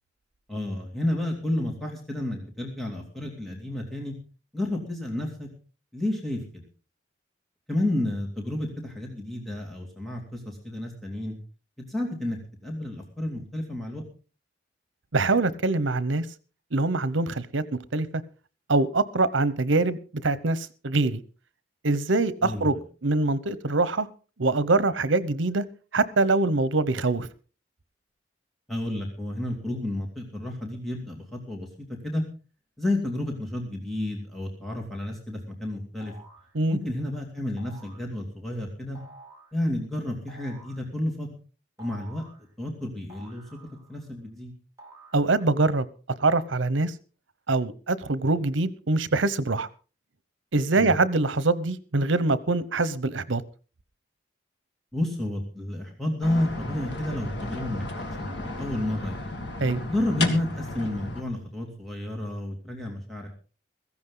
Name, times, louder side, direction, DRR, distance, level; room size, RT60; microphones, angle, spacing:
voice 1, 0.5-4.1 4.5-5.5 5.9-6.6 7.7-11.3 11.9-14.0 22.4-22.8 28.7-32.2 32.8-36.1 36.7-39.0 39.5-41.3 41.8-42.2 42.6-43.4 43.9-44.5 50.8-50.9 54.9-59.3 59.9-63.3, left 1 dB, ahead, 0 dB, 2.5 m, -31 dB
voice 2, 15.1-16.2 16.7-18.1 18.7-21.2 21.8-24.1 24.4-25.6 25.9-27.3 36.5-36.8 45.1-45.9 46.2-46.9 47.5-49.7 50.5-53.4 59.6-59.8, right 3 dB, 80° right, 16 dB, 1.0 m, -24 dB
sound 1, 36.0-36.6 37.6-38.1 39.0-39.6 40.3-40.9 41.8-42.5 43.1-44.1 44.8-45.6, right 2 dB, 15° right, 2.2 m, -50 dB
sound 2, 56.2-61.2, left 2 dB, 65° left, 1.9 m, -34 dB
16.0 x 15.0 x 3.9 m, 0.36 s
head